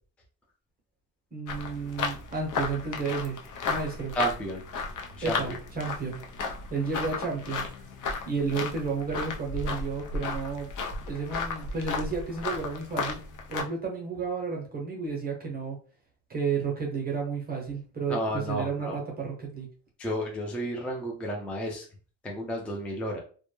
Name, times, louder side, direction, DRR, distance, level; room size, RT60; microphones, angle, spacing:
voice 1, 1.3-3.4 3.7-4.1 5.2-6.2 6.7-7.6 8.3-10.7 11.1-13.2 13.5-15.8 16.3-19.7, right 5 dB, 25° right, -1 dB, 0.7 m, -32 dB
sound 1, 1.5-13.6, left 4 dB, 55° left, 0.6 m, -34 dB
voice 2, 4.1-4.6 5.2-5.4 18.1-19.0 20.0-21.9 22.2-23.2, equal, 5° left, -1 dB, 0.3 m, -32 dB
2.2 x 2.0 x 3.0 m, 0.39 s
cardioid pair, 140°, 37 cm